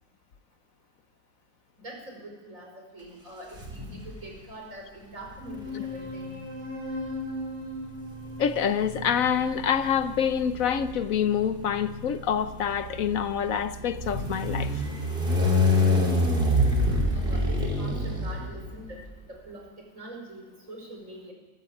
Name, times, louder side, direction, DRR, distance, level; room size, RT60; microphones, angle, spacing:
voice 1, 1.8-6.3 17.1-19.0 19.3-19.6 19.9-21.3, right 1 dB, 60° right, 1 dB, 5.5 m, -43 dB
sound 1, 3.5-4.3 5.3-19.0, left 1 dB, 35° right, 3.7 m, -28 dB
sound 2, 5.4-10.3, left 1 dB, 20° right, 5.9 m, -38 dB
voice 2, 8.4-14.8, left 8 dB, 70° left, 12 dB, 1.2 m, -26 dB
24.5 x 13.0 x 8.5 m, 1.2 s
omnidirectional pair, 1.5 m